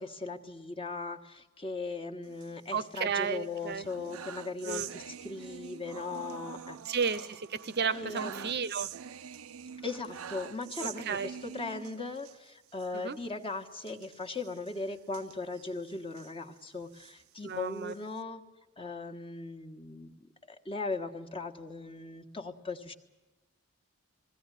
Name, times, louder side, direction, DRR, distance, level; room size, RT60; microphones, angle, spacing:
voice 1, 0.0-7.0 7.8-8.5 9.8-18.4 18.8-22.9, left 3 dB, 25° left, 3 dB, 1.5 m, -39 dB
sound 1, 2.2-3.2 3.6-12.4 12.7-12.9 13.1-13.3 13.8-16.3 16.8-18.2, right 8 dB, 75° right, 0.6 m, -45 dB
voice 2, 2.7-3.9 4.7-4.9 6.9-8.9 10.8-11.3 12.9-13.2 17.4-17.9, right 6 dB, 50° right, 14 dB, 0.8 m, -33 dB
21.0 x 16.5 x 9.9 m, 1.2 s
head